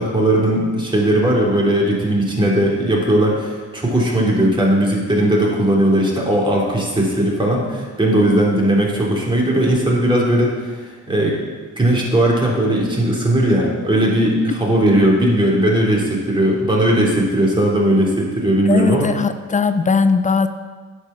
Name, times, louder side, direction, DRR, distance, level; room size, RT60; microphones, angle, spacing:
voice 1, 0.0-11.4 11.8-19.1, right 1 dB, 15° right, -4 dB, 2.6 m, -17 dB
voice 2, 18.7-20.5, left 5 dB, 25° left, 11 dB, 0.5 m, -18 dB
9.5 x 4.8 x 6.7 m, 1.4 s
cardioid pair, 90°, 30 cm